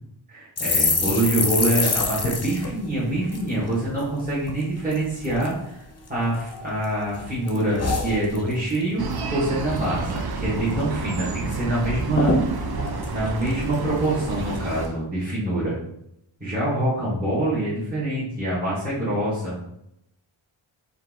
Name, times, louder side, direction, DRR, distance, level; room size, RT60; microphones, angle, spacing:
voice 1, 0.3-5.8 6.1-9.0 9.3-12.3 13.0-15.8 16.4-19.6, right 1 dB, 20° right, -11 dB, 1.6 m, -25 dB
sound 1, 0.6-4.1 4.4-4.6 4.9-5.5 6.0-6.8 7.1-8.8 9.1-9.3 9.6-10.2 10.5-10.6 10.9-11.6 11.9-12.0 12.2-14.0 14.5-14.9, left 3 dB, 30° left, 0.7 m, -27 dB
sound 2, 9.0-14.9, right 4 dB, 50° right, 0.6 m, -30 dB
4.4 x 2.7 x 3.7 m, 0.79 s
wide cardioid pair, 110°, 48 cm